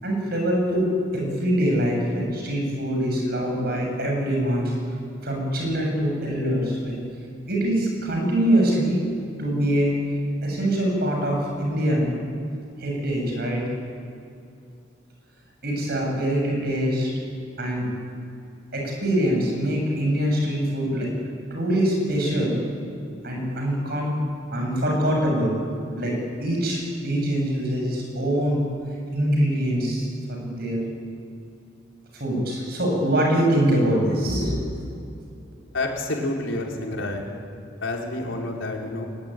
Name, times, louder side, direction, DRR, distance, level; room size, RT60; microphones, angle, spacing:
voice 1, 0.0-4.7 5.2-7.0 7.5-9.0 9.4-10.0 10.4-12.1 12.8-13.7 15.6-17.1 17.6-17.9 18.7-21.1 21.5-22.6 23.2-24.2 24.5-25.6 26.0-28.7 29.1-30.8 32.1-34.6, equal, 55° right, 0 dB, 7.1 m, -24 dB
voice 2, 35.7-37.2 37.8-39.1, left 2 dB, 85° left, 0 dB, 4.1 m, -28 dB
21.5 x 20.5 x 9.2 m, 2.5 s
head